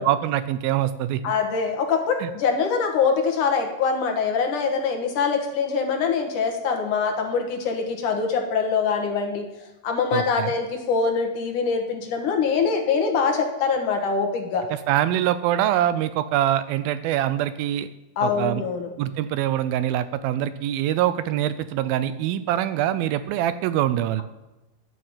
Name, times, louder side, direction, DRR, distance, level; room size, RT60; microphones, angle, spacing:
voice 1, 0.0-1.2 2.2-2.3 10.1-10.5 14.9-17.9 18.2-18.6 19.0-24.2, right 12 dB, 80° right, 14 dB, 2.3 m, -24 dB
voice 2, 1.2-9.5 9.8-14.6 18.2-18.9, left 5 dB, 60° left, 3 dB, 2.8 m, -24 dB
12.5 x 6.4 x 8.8 m, 1.0 s
omnidirectional pair, 4.4 m